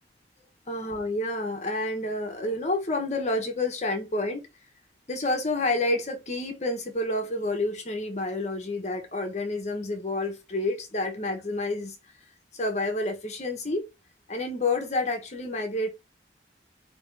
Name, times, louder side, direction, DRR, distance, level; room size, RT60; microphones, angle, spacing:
voice 1, 0.7-4.4 5.1-11.9 12.5-13.9 14.3-15.9, left 2 dB, 40° left, 1.0 m, -29 dB
5.1 x 3.0 x 3.3 m
head